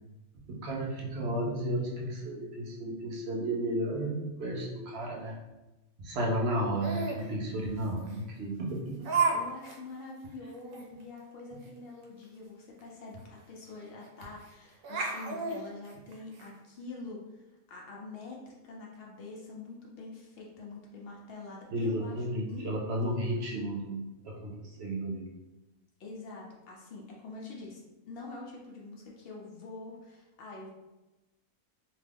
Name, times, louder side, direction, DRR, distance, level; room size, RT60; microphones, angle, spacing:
voice 1, 0.5-5.4 6.0-9.1 21.7-25.3, right 1 dB, 60° right, -2 dB, 0.7 m, -33 dB
Laughter, 6.8-7.2 8.1-8.2 9.0-9.4 9.6-9.8 10.2-10.3 10.7-10.8 12.8-12.9 13.2-13.3 14.2-14.5 14.8-16.5, right 4 dB, 80° right, 1.0 m, -31 dB
voice 2, 9.3-17.4 17.7-22.2 22.5-22.7 23.0-23.4 26.0-30.7, left 3 dB, 60° left, -2 dB, 0.6 m, -45 dB
2.7 x 2.2 x 3.3 m, 1.0 s
omnidirectional pair, 1.5 m